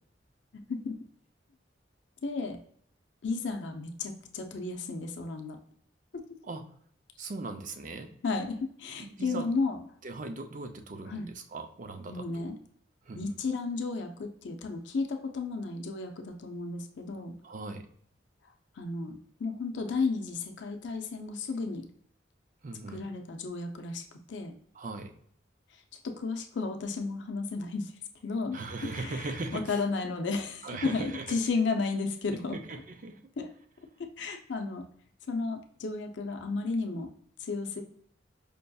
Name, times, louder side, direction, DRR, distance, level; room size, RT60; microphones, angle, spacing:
voice 1, 0.5-0.9 2.2-2.6 3.2-5.6 6.1-6.2 8.2-9.8 11.1-11.3 12.1-12.6 13.1-17.4 18.8-21.9 22.9-24.5 26.0-27.9 28.2-28.6 28.8-29.3 29.5-32.6 33.4-33.5 34.2-34.9 35.3-37.1 37.4-37.8, left 4 dB, 75° left, 5 dB, 0.5 m, -33 dB
voice 2, 7.2-8.1 9.0-9.5 10.0-12.5 13.0-13.3 17.4-17.9 22.6-23.1 24.7-25.1 28.5-29.8 30.6-31.4 32.5-33.2, right 3 dB, 45° right, 5 dB, 0.5 m, -39 dB
5.2 x 2.6 x 2.3 m, 0.63 s
head